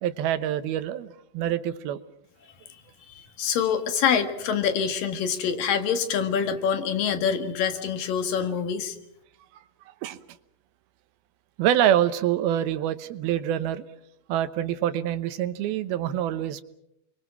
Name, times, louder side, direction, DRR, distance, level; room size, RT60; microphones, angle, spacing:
voice 1, 0.0-2.0 10.0-10.2 11.6-13.8 14.3-16.6, right 11 dB, 85° right, 12 dB, 3.0 m, -26 dB
voice 2, 3.0-9.0, left 7 dB, 70° left, 8 dB, 3.3 m, -26 dB
30.0 x 23.0 x 6.1 m, 0.78 s
omnidirectional pair, 4.3 m